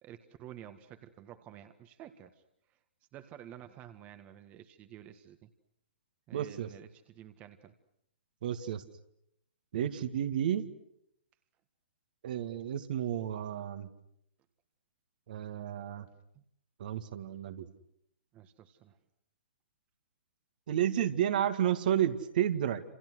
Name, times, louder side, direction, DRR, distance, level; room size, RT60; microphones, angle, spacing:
voice 1, 0.0-2.4 3.1-5.5 6.3-7.7 9.7-9.9 16.3-16.4 18.3-19.0, right 11 dB, 25° right, 9 dB, 1.7 m, -51 dB
voice 2, 6.3-6.7 8.4-8.8 9.7-10.7 12.2-13.9 15.3-16.1 16.8-17.7 20.7-22.8, right 10 dB, 50° right, 8 dB, 2.1 m, -31 dB
29.0 x 28.0 x 6.4 m, 0.76 s
figure-of-eight pair, 120°, 6 cm